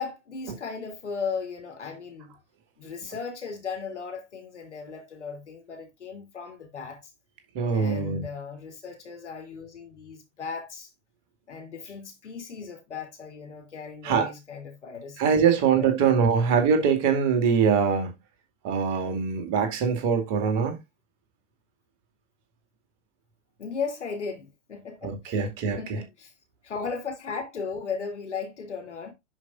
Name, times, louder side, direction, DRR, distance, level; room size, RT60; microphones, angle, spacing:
voice 1, 0.0-2.3 2.8-7.1 7.7-10.9 11.5-16.2 23.6-25.4 25.8-26.3 26.6-29.1, left 5 dB, 65° left, 3.3 m, -36 dB
voice 2, 7.5-8.2 14.0-14.3 15.2-18.1 18.6-20.8 25.0-25.8, right 6 dB, 35° right, 2.4 m, -23 dB
10.5 x 5.1 x 2.5 m
figure-of-eight pair, 100°, 37 cm